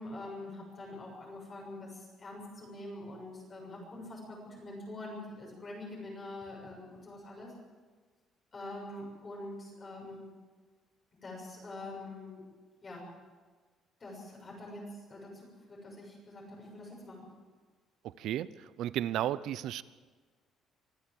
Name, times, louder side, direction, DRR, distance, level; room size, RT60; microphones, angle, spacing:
voice 1, 0.0-7.5 8.5-10.3 11.2-12.5 12.8-13.0 14.0-17.3, left 2 dB, 25° left, -3 dB, 7.0 m, -45 dB
voice 2, 18.0-19.8, right 12 dB, 70° right, 17 dB, 0.8 m, -34 dB
25.0 x 15.0 x 7.9 m, 1.4 s
cardioid pair, 155°, 0 cm